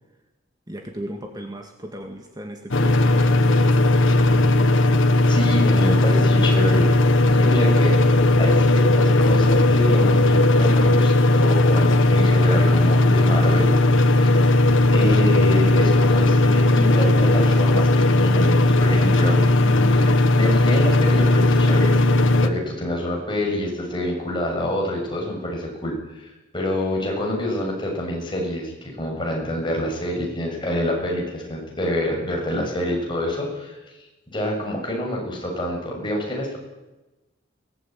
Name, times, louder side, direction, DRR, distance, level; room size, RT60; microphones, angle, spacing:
voice 1, 0.7-3.7, right 1 dB, 20° right, 3 dB, 2.1 m, -36 dB
sound 1, 2.7-22.5, left 2 dB, 70° left, 1.6 m, -17 dB
voice 2, 5.3-8.0 8.4-14.6 14.9-33.8 34.3-36.6, left 1 dB, 25° left, -1 dB, 7.2 m, -27 dB
22.5 x 19.0 x 9.4 m, 1.1 s
head